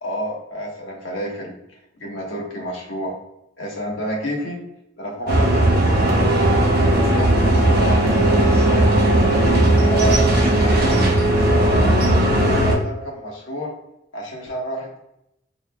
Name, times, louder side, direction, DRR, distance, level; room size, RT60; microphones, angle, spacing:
voice 1, 0.0-1.6 1.9-3.1 3.6-4.6 5.0-6.3 7.1-8.9 9.8-10.9 11.4-13.7 14.1-15.0, right 1 dB, 85° left, -2 dB, 1.0 m, -29 dB
sound 1, 5.3-12.7, right 1 dB, 50° right, 0.7 m, -17 dB
6.3 x 2.4 x 2.2 m, 0.84 s
head